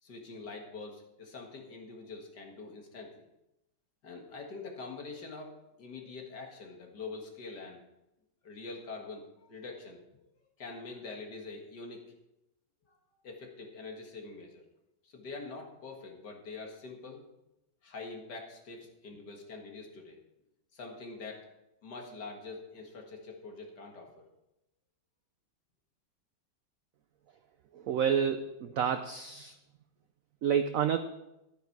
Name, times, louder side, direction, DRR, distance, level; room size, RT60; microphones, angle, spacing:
voice 1, 0.0-3.1 4.0-7.8 8.4-10.3 10.6-12.0 12.9-13.0 13.2-14.6 15.0-17.2 17.8-20.2 20.7-21.5 21.8-24.3, left 3 dB, 60° left, 1 dB, 2.3 m, -45 dB
voice 2, 27.9-29.5 30.4-31.0, right 8 dB, 75° right, 9 dB, 0.7 m, -29 dB
11.5 x 9.3 x 4.6 m, 0.90 s
omnidirectional pair, 2.0 m